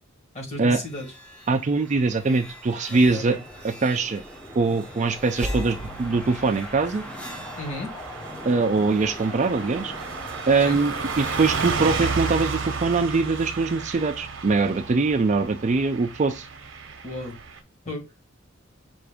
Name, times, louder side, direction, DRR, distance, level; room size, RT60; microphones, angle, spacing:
voice 1, 0.3-1.1 2.9-3.4 7.6-7.9 10.6-10.8 17.0-17.4 17.9-18.1, left 1 dB, 35° left, 1.8 m, -34 dB
sound 1, 0.8-13.6, equal, 5° left, 0.8 m, -39 dB
voice 2, 1.5-3.4 3.6-4.2 4.6-7.0 8.4-9.9 10.5-16.5, right 3 dB, 35° right, 0.4 m, -22 dB
Car passing by / Truck, 4.6-17.6, right 4 dB, 65° right, 0.8 m, -33 dB
5.6 x 2.6 x 3.4 m
head